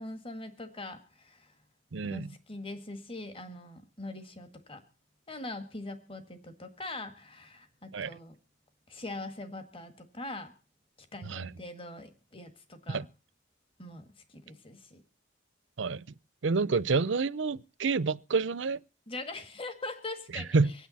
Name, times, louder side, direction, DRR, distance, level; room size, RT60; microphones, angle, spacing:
voice 1, 0.0-1.5 2.0-4.8 5.3-8.3 8.9-10.5 11.1-13.1 13.8-15.0 19.1-20.7, left 2 dB, 30° left, 1.8 m, -42 dB
voice 2, 1.9-2.3 7.9-8.1 11.2-11.5 12.9-13.1 15.8-16.0 16.4-18.8 20.3-20.7, right 4 dB, 70° right, 0.6 m, -28 dB
24.5 x 9.5 x 4.2 m
head